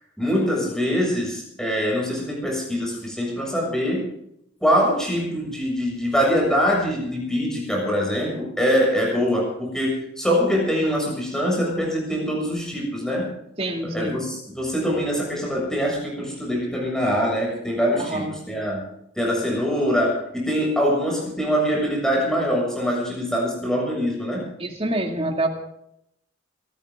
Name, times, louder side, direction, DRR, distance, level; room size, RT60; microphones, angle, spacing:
voice 1, 0.2-4.1 4.6-13.3 13.8-18.8 19.2-24.4, equal, 5° left, -2 dB, 7.0 m, -23 dB
voice 2, 13.6-14.3 17.9-18.4 24.6-25.5, right 1 dB, 30° right, 2 dB, 2.5 m, -26 dB
26.0 x 13.5 x 3.8 m, 0.77 s
head